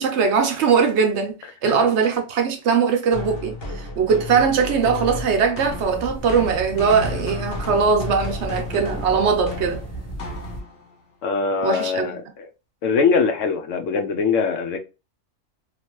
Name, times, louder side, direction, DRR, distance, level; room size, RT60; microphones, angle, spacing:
voice 1, 0.0-1.3 1.6-9.8 11.6-12.2, right 6 dB, 65° right, 0.8 m, -20 dB
sound 1, 3.1-10.9, left 2 dB, 50° left, 0.9 m, -33 dB
sound 2, 5.6-10.6, equal, 15° left, 0.7 m, -35 dB
voice 2, 11.2-12.5 12.8-14.8, left 5 dB, 75° left, 0.9 m, -22 dB
2.8 x 2.5 x 2.9 m
omnidirectional pair, 1.3 m